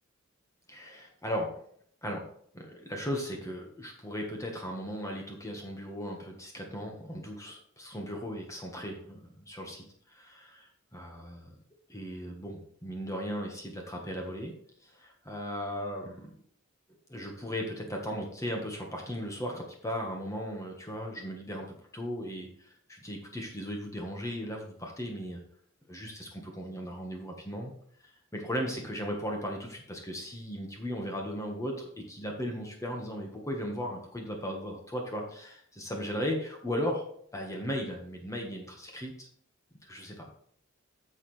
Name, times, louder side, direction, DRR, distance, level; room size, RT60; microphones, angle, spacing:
voice 1, 0.7-1.5 2.0-2.2 2.5-11.6 11.9-14.5 14.8-16.3 17.1-25.4 25.9-27.7 28.0-37.0 37.3-39.3 39.8-40.3, equal, 15° left, 1 dB, 1.5 m, -37 dB
9.8 x 6.7 x 3.3 m, 0.62 s
head